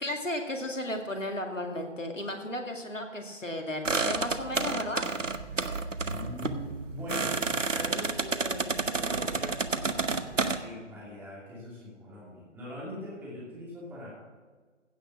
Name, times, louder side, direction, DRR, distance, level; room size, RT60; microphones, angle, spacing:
voice 1, 0.0-5.1, left 1 dB, 85° left, 3 dB, 2.3 m, -34 dB
sound 1, 3.8-10.6, right 4 dB, 85° right, 1.0 m, -30 dB
voice 2, 6.0-14.1, left 1 dB, 5° right, -6 dB, 2.6 m, -42 dB
16.0 x 6.5 x 6.0 m, 1.4 s
figure-of-eight pair, 145°, 37 cm